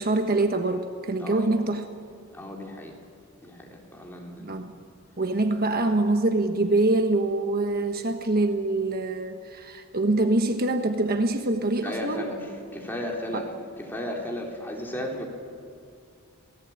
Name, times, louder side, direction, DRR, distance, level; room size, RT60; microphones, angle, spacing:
voice 1, 0.0-1.9 4.4-4.7 5.2-12.3 13.3-13.4, right 2 dB, 45° right, 6 dB, 1.2 m, -25 dB
voice 2, 1.2-1.6 2.3-2.9 3.4-4.7 5.8-6.1 11.8-13.5 13.8-15.3, left 1 dB, 10° left, -1 dB, 3.9 m, -35 dB
26.5 x 18.0 x 8.9 m, 2.3 s
head